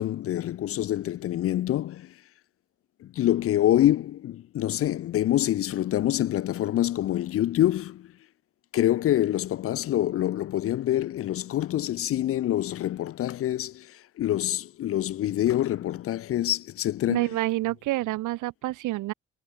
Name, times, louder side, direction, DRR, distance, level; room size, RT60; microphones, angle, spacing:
voice 1, 0.0-2.1 3.0-8.1 8.7-17.3, left 13 dB, 50° left, 0.4 m, -26 dB
voice 2, 17.1-19.1, right 17 dB, 85° right, 0.7 m, -28 dB
cardioid pair, 90°, 30 cm